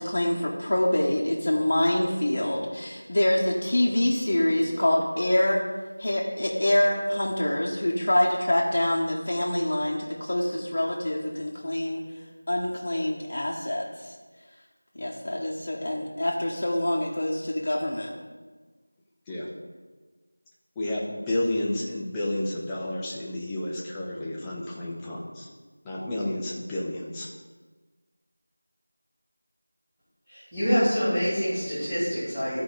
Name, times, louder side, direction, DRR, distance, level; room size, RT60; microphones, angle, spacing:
voice 1, 0.0-5.6 6.0-12.0 12.5-14.1 14.9-18.1, left 1 dB, 40° left, -5 dB, 1.0 m, -25 dB
voice 2, 20.8-25.5 25.8-27.3, left 1 dB, 5° left, -6 dB, 0.7 m, -31 dB
voice 3, 30.3-32.6, equal, 10° right, -19 dB, 2.5 m, -26 dB
13.5 x 4.8 x 3.8 m, 1.4 s
figure-of-eight pair, 175°, 0 cm